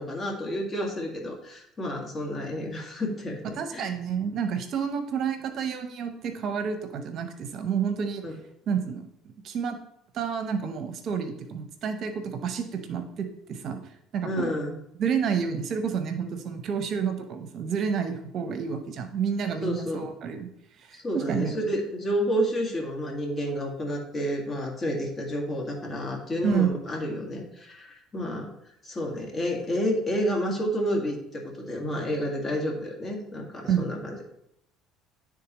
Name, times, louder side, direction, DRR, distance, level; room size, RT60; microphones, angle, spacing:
voice 1, 0.0-3.9 8.2-8.3 14.2-14.7 19.6-20.0 20.9-28.5 28.8-34.2, equal, 30° left, 0 dB, 1.8 m, -30 dB
voice 2, 3.4-8.2 8.7-9.0 9.4-9.8 10.1-14.5 15.0-20.5 20.8-21.5 26.4-26.7 33.6-33.9, right 7 dB, 55° right, 8 dB, 0.7 m, -29 dB
10.5 x 3.7 x 3.0 m, 0.76 s
supercardioid pair, 95°, 0 cm